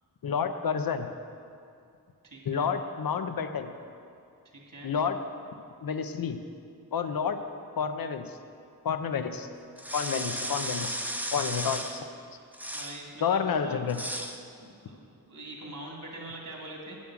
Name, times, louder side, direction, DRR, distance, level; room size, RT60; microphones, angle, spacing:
voice 1, 0.2-1.1 2.5-3.7 4.8-5.2 5.8-6.4 6.9-7.4 7.8-8.4 8.8-9.5 9.9-11.1 11.3-12.1 13.2-14.0, left 6 dB, 65° left, 8 dB, 0.7 m, -29 dB
voice 2, 2.2-2.7 4.4-4.9 12.7-13.8 14.6-17.0, right 2 dB, 55° right, -1 dB, 2.3 m, -44 dB
sound 1, 9.8-12.0 12.5-13.0 13.9-14.4, equal, 5° right, 0.7 m, -34 dB
8.8 x 7.2 x 6.2 m, 2.4 s
cardioid pair, 60°, 38 cm